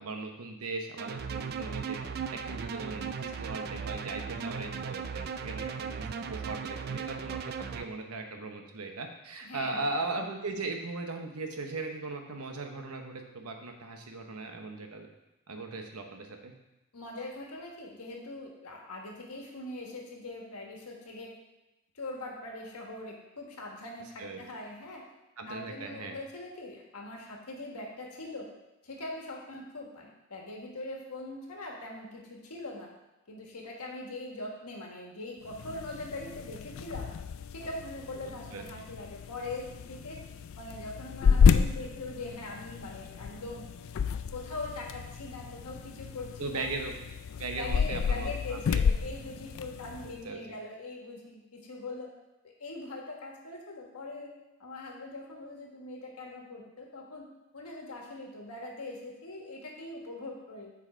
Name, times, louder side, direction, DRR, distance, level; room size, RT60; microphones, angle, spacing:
voice 1, 0.0-2.0 2.3-15.1 15.5-16.5 24.2-24.4 25.4-26.2 38.5-38.6 46.4-46.9 47.4-48.8 50.2-50.4, right 3 dB, 80° right, 4 dB, 0.9 m, -38 dB
sound 1, 1.0-7.8, right 6 dB, 45° right, 0.3 m, -37 dB
voice 2, 9.4-9.9 16.9-21.3 21.9-25.0 25.5-28.5 28.8-32.9 33.3-37.1 37.5-40.2 40.5-43.6 44.3-46.7 47.6-52.1 52.6-54.3 54.6-57.2 57.5-60.7, left 2 dB, 85° left, 0 dB, 1.5 m, -42 dB
sound 2, 35.4-50.2, left 6 dB, 60° left, 0.3 m, -30 dB
7.1 x 4.7 x 4.4 m, 0.99 s
head